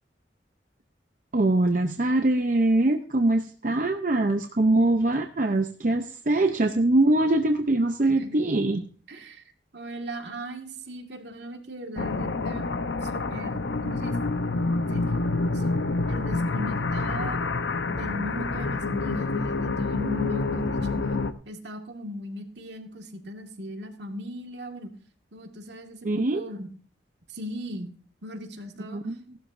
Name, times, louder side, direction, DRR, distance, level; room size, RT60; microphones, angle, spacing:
voice 1, 1.3-8.9 26.0-26.4 28.9-29.2, right 2 dB, 45° right, 5 dB, 0.7 m, -23 dB
voice 2, 8.0-8.5 9.1-9.4 9.7-12.6 12.9-14.2 14.9-15.0 15.5-15.7 16.1-17.4 17.9-20.8 21.5-24.9 25.3-26.7 27.3-27.9 28.2-29.0, equal, 70° right, 4 dB, 2.0 m, -38 dB
sound 1, 12.0-21.3, left 3 dB, 80° left, 0.8 m, -27 dB
17.5 x 12.0 x 2.6 m, 0.42 s
head